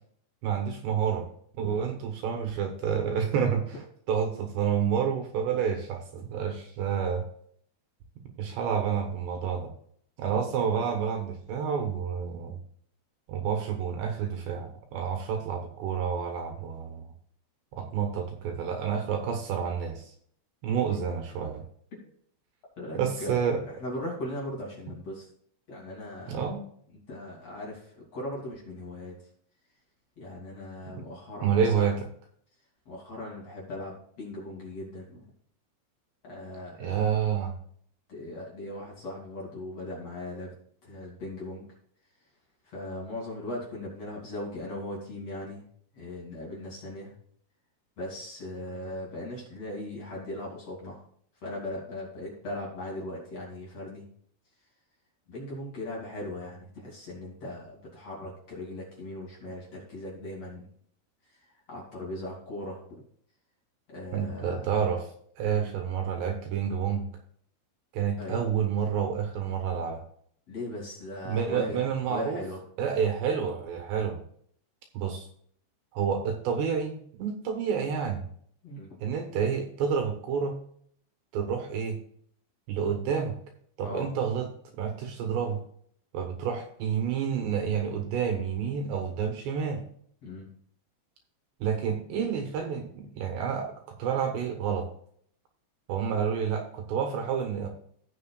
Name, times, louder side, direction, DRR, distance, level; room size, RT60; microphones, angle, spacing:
voice 1, 0.4-1.3 1.6-7.2 8.4-9.7 10.2-12.6 13.3-17.0 17.7-20.1 20.6-21.6 22.9-23.6 26.3-26.6 31.4-32.1 36.8-37.5 64.1-65.1 65.4-67.1 67.9-70.0 71.2-72.4 72.8-74.2 74.9-75.3 75.9-78.2 79.0-80.6 81.3-82.0 82.7-83.3 83.8-84.5 84.8-85.6 86.1-89.8 91.6-94.9 95.9-97.7, right 7 dB, 70° right, 4 dB, 3.2 m, -29 dB
voice 2, 22.8-25.3 25.7-26.5 27.1-29.2 30.2-31.9 32.9-35.3 36.2-37.0 38.1-40.5 40.8-41.7 42.7-45.6 45.9-47.1 48.0-51.0 51.4-54.0 55.3-60.7 61.7-63.0 63.9-64.7 65.4-65.7 68.2-68.4 70.5-72.6 78.6-79.0 83.8-84.1 90.2-90.5, left 1 dB, 35° left, -4 dB, 3.4 m, -38 dB
17.5 x 6.4 x 2.4 m, 0.63 s
omnidirectional pair, 5.6 m